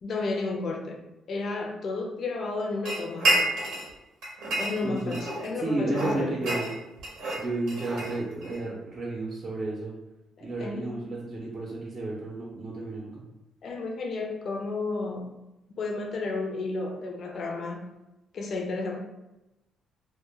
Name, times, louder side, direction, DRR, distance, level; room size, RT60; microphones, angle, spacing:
voice 1, 0.0-3.4 4.5-6.4 10.4-10.9 13.6-15.3 15.8-17.9 18.3-19.0, left 3 dB, 55° left, 2 dB, 0.4 m, -32 dB
sound 1, 2.8-3.9 4.2-5.5 5.9-8.6, right 1 dB, 85° right, 0.6 m, -29 dB
voice 2, 4.8-5.2 5.6-6.7 7.4-9.9 10.4-13.2, right 2 dB, 40° right, -3 dB, 0.5 m, -32 dB
2.1 x 2.1 x 3.2 m, 0.96 s
cardioid pair, 90°, 0 cm